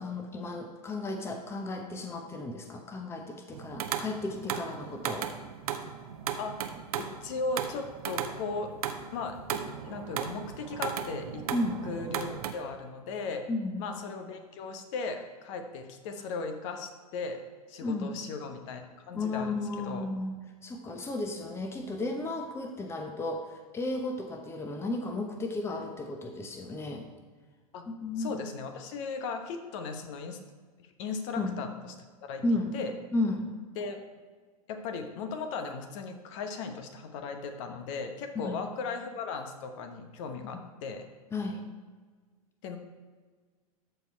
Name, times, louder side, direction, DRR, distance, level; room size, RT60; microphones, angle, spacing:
voice 1, 0.0-5.3 11.5-11.8 13.5-13.8 17.8-18.2 19.1-23.4 23.7-27.1 27.9-28.4 31.4-31.6 32.4-32.8 33.1-33.5 38.3-38.6 40.5-40.6 41.3-41.6, left 2 dB, 15° left, 4 dB, 0.9 m, -33 dB
sound 1, 3.5-12.5, right 8 dB, 70° right, 0.9 m, -36 dB
voice 2, 6.9-8.7 9.1-11.5 11.8-13.5 13.8-17.4 17.7-20.1 27.7-27.8 28.2-30.4 31.0-31.7 32.2-32.4 32.7-32.9 33.8-34.0 34.7-41.1 42.6-42.8, left 4 dB, 50° left, 6 dB, 1.1 m, -37 dB
13.5 x 4.6 x 4.5 m, 1.5 s
hypercardioid pair, 110°, 20 cm